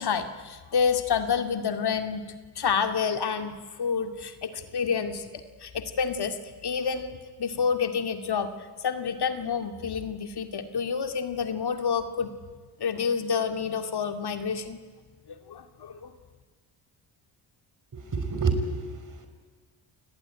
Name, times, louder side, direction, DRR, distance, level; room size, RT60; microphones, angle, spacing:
voice 1, 0.0-2.3 2.6-8.5 8.8-12.3 12.8-14.8 15.3-16.1, left 6 dB, 55° left, 7 dB, 2.3 m, -29 dB
voice 2, 17.9-19.3, right 4 dB, 40° right, 8 dB, 5.5 m, -29 dB
29.0 x 19.5 x 9.9 m, 1.5 s
supercardioid pair, 65°, 48 cm